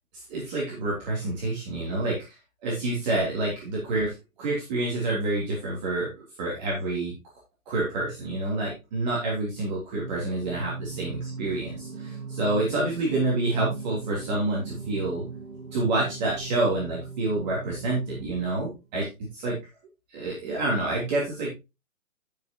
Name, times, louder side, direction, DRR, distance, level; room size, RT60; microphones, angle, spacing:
voice 1, 0.1-2.2 2.6-6.1 6.4-7.1 7.6-15.2 15.7-19.6 20.1-21.5, right 2 dB, 30° right, -5 dB, 3.5 m, -28 dB
Singing, 9.9-18.8, right 4 dB, 75° right, 4.1 m, -39 dB
12.5 x 6.9 x 3.0 m, 0.26 s
hypercardioid pair, 165°, 41 cm